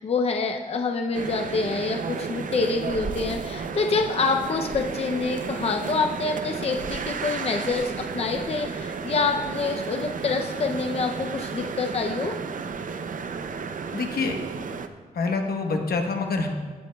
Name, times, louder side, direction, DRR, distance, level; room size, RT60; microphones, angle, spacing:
voice 1, 0.0-12.3, left 4 dB, 40° left, 3 dB, 0.5 m, -26 dB
sound 1, 1.1-14.9, right 5 dB, 60° right, 0.5 m, -33 dB
voice 2, 13.9-14.4 15.1-16.5, left 3 dB, 80° left, 3 dB, 1.0 m, -26 dB
16.5 x 8.2 x 2.3 m, 1.4 s
wide cardioid pair, 115°, 16 cm